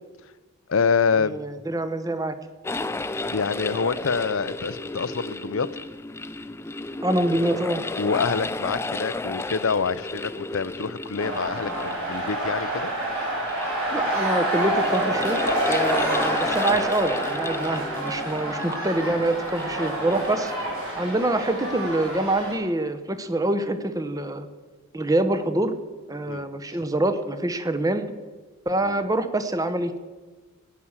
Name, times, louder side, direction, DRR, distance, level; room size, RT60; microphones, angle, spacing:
voice 1, 0.7-1.4 3.3-5.7 8.0-12.9 26.3-26.4 28.8-28.9, left 5 dB, 65° left, 17 dB, 0.6 m, -26 dB
voice 2, 1.3-2.3 7.0-7.8 13.9-15.4 15.7-20.5 21.0-24.5 24.9-25.8 26.1-28.1 28.7-30.0, right 1 dB, 15° right, 11 dB, 0.8 m, -25 dB
sound 1, 2.6-21.3, left 2 dB, 10° left, 0.4 m, -33 dB
sound 2, 11.2-22.5, right 1 dB, 70° right, 6.0 m, -27 dB
15.5 x 9.9 x 7.3 m, 1.3 s
head